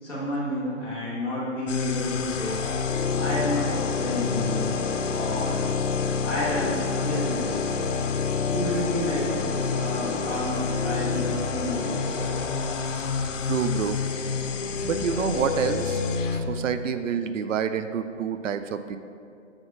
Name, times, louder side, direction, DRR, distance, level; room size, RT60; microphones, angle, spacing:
voice 1, 0.0-2.6 3.2-4.7 5.1-5.7 6.2-7.5 8.4-9.3 9.7-11.8, left 1 dB, 5° left, -14 dB, 1.6 m, -30 dB
sound 1, 1.7-16.4, left 5 dB, 80° left, 0.8 m, -27 dB
voice 2, 13.5-14.0 14.8-16.0 16.3-19.0, right 7 dB, 80° right, 10 dB, 0.5 m, -28 dB
6.7 x 4.1 x 6.0 m, 2.6 s
hypercardioid pair, 175°, 37 cm